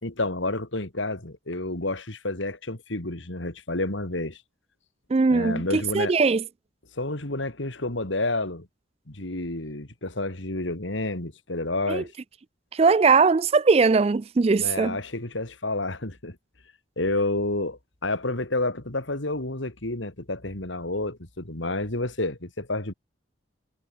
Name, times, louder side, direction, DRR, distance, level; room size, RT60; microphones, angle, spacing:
voice 1, 0.0-4.4 5.3-6.1 7.0-8.7 9.1-12.1 14.6-16.4 17.0-22.9, left 2 dB, 75° left, 3.0 m, -30 dB
voice 2, 5.1-6.4 11.9-12.0 12.7-15.0, right 4 dB, 30° right, 0.3 m, -20 dB
head